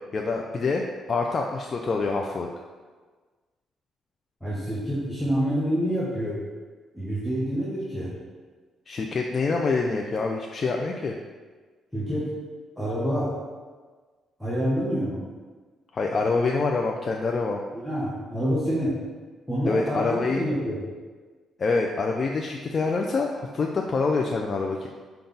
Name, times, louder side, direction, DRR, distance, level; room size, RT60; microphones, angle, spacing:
voice 1, 0.1-2.5 8.9-11.2 15.9-17.6 19.7-20.4 21.6-24.9, left 3 dB, 40° left, 0 dB, 0.3 m, -26 dB
voice 2, 4.4-6.4 6.9-8.1 11.9-12.3 12.8-13.3 14.4-15.2 17.7-19.0 19.5-20.8, equal, ahead, -8 dB, 0.9 m, -27 dB
5.3 x 2.3 x 3.8 m, 1.4 s
cardioid pair, 90°, 0 cm